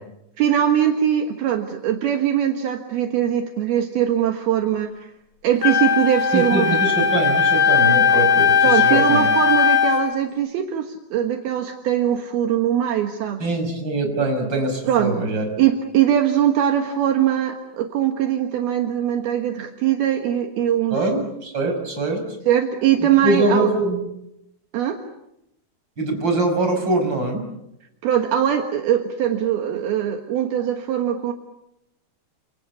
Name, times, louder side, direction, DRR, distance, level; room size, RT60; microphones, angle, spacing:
voice 1, 0.4-5.1 5.4-6.8 8.6-13.6 14.9-15.1 15.6-21.0 22.5-23.7 24.7-25.0 28.0-31.3, right 10 dB, 70° right, 4 dB, 3.3 m, -21 dB
Wind instrument woodwind instrument, 5.6-10.1, left 6 dB, 45° left, 3.5 m, -18 dB
voice 2, 6.3-9.3 13.4-15.4 20.9-22.2 23.0-24.0 26.0-27.5, right 2 dB, 25° right, 4 dB, 6.0 m, -23 dB
29.0 x 27.5 x 7.1 m, 0.86 s
omnidirectional pair, 4.8 m